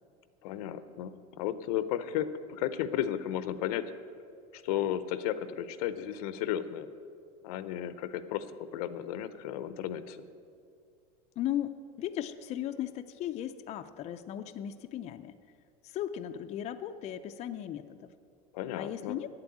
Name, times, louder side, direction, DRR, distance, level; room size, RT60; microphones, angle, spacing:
voice 1, 0.4-3.9 4.5-6.9 7.4-10.2 18.5-19.2, left 11 dB, 80° left, 13 dB, 0.7 m, -34 dB
voice 2, 11.4-11.7 12.0-15.4 15.8-18.1 18.8-19.3, left 11 dB, 35° left, 8 dB, 0.4 m, -36 dB
8.8 x 7.7 x 8.5 m, 2.3 s
supercardioid pair, 130°, 19 cm